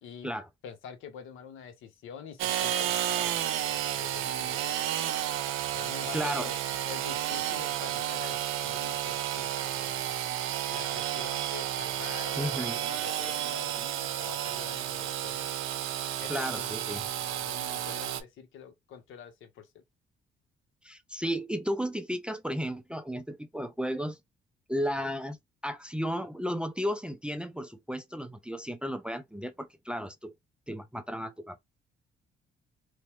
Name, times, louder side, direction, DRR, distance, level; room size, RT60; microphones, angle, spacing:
voice 1, 0.0-0.3 0.6-5.2 5.7-10.1 10.7-15.5 16.2-19.8, left 7 dB, 85° left, 0.8 m, -46 dB
Engine / Sawing, 2.4-18.2, right 11 dB, 85° right, 0.5 m, -32 dB
voice 2, 6.1-6.5 12.4-12.8 16.3-17.0 20.8-24.2 24.7-30.3 30.7-31.6, equal, 5° right, 0.3 m, -34 dB
3.0 x 2.1 x 2.9 m
cardioid pair, 90°, 20 cm